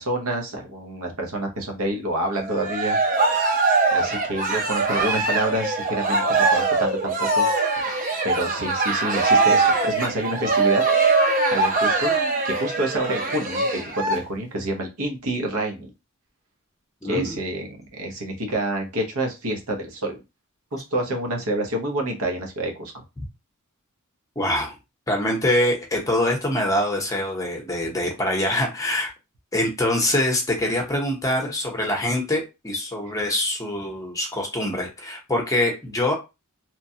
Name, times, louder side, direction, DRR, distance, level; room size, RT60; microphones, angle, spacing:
voice 1, 0.0-3.0 3.9-7.5 7.8-7.9 8.2-10.8 11.2-12.1 12.4-15.9 17.0-20.2 20.7-22.9 33.1-33.2, right 1 dB, 80° right, 3 dB, 0.9 m, -28 dB
Cheering, 2.4-14.2, right 3 dB, 40° right, 0.6 m, -22 dB
voice 2, 17.0-17.4 24.4-24.7 25.1-29.1 29.5-36.1, left 1 dB, 15° left, 1 dB, 0.7 m, -24 dB
3.0 x 2.2 x 2.7 m, 0.25 s
head